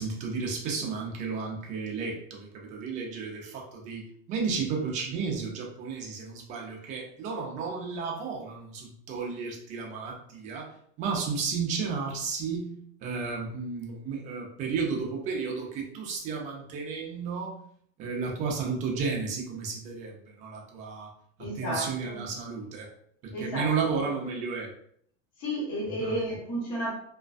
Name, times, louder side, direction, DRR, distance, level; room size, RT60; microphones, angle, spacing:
voice 1, 0.0-4.0 4.3-10.7 11.0-12.7 13.0-17.5 18.0-21.1 21.6-22.9 23.2-24.7 26.0-26.1, right 5 dB, 20° right, -1 dB, 0.3 m, -33 dB
voice 2, 21.4-22.2 23.3-24.0 25.4-26.9, right 1 dB, 55° left, -3 dB, 1.3 m, -32 dB
2.4 x 2.3 x 2.3 m, 0.66 s
supercardioid pair, 135°, 40 cm